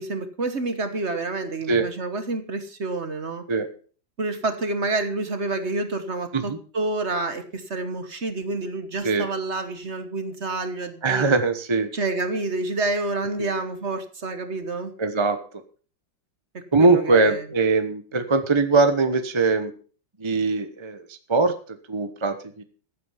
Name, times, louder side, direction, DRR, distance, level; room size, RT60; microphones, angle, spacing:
voice 1, 0.0-3.4 4.2-11.3 11.9-14.9 16.5-17.4, right 2 dB, 40° right, 9 dB, 1.4 m, -28 dB
voice 2, 11.0-11.9 13.4-13.5 15.0-15.4 16.7-19.7 20.2-21.5 21.9-22.6, right 3 dB, 20° right, 8 dB, 0.8 m, -21 dB
14.5 x 8.6 x 5.7 m, 0.40 s
omnidirectional pair, 2.0 m